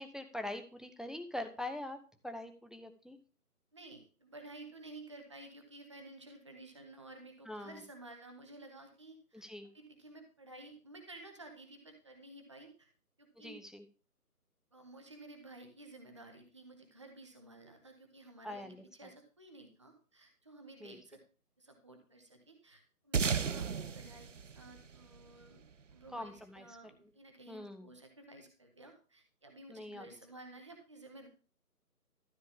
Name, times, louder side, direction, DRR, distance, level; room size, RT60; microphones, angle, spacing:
voice 1, 0.0-3.2 7.5-7.8 9.3-9.7 13.4-13.8 18.4-19.1 20.8-21.0 26.1-26.8 27.5-27.9 29.7-30.1, left 1 dB, ahead, 7 dB, 0.4 m, -43 dB
voice 2, 3.7-9.5 9.7-12.9 13.2-13.6 14.7-21.2 21.6-24.3 24.5-31.3, right 2 dB, 20° right, 4 dB, 0.9 m, -53 dB
sound 1, 23.1-25.9, right 6 dB, 55° right, 0.5 m, -35 dB
13.0 x 8.6 x 3.6 m, 0.39 s
figure-of-eight pair, 165°, 46 cm